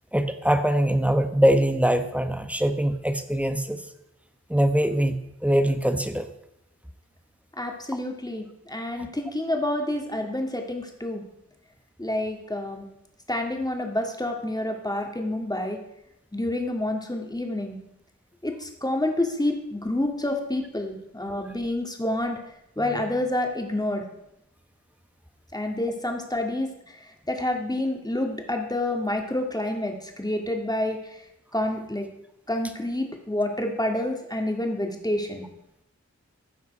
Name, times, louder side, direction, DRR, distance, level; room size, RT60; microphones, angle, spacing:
voice 1, 0.1-3.8 4.5-6.3, right 1 dB, 5° right, 8 dB, 1.1 m, -22 dB
voice 2, 7.6-11.2 12.0-12.9 13.3-15.8 16.3-17.8 18.4-22.4 22.8-24.1 25.5-31.2 31.5-32.1 32.5-35.4, left 1 dB, 15° left, 2 dB, 2.0 m, -28 dB
15.0 x 5.8 x 5.4 m, 0.81 s
wide cardioid pair, 60°, 30 cm